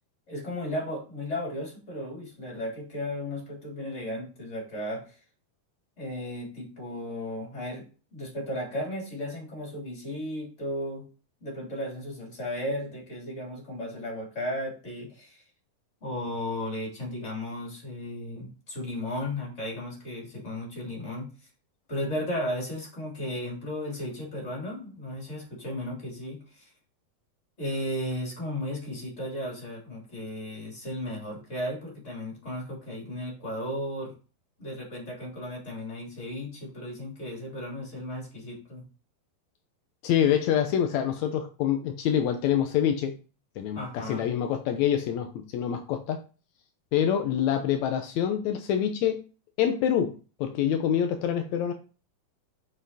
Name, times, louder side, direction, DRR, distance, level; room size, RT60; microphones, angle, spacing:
voice 1, 0.3-5.2 6.0-11.1 11.4-15.4 16.0-21.5 21.9-26.7 27.6-34.1 34.6-38.8 43.7-44.3, left 1 dB, 20° left, -1 dB, 3.2 m, -35 dB
voice 2, 40.0-43.1 43.6-46.2 46.9-49.2 49.6-51.7, left 9 dB, 85° left, 6 dB, 1.6 m, -26 dB
7.6 x 6.1 x 4.1 m, 0.35 s
omnidirectional pair, 4.2 m